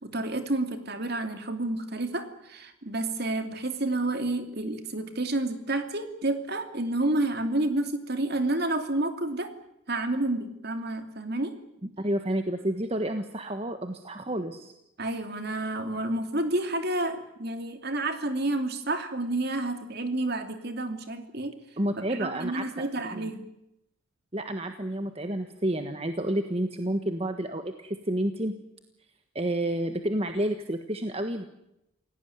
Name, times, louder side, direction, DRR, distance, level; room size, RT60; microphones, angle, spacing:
voice 1, 0.0-9.5 9.9-11.5 15.0-21.6 22.1-23.4, right 2 dB, 50° right, 7 dB, 2.8 m, -30 dB
voice 2, 12.0-14.7 21.8-23.3 24.3-28.5 29.3-31.4, right 1 dB, 30° right, 7 dB, 1.4 m, -30 dB
28.0 x 17.5 x 9.4 m, 0.85 s
head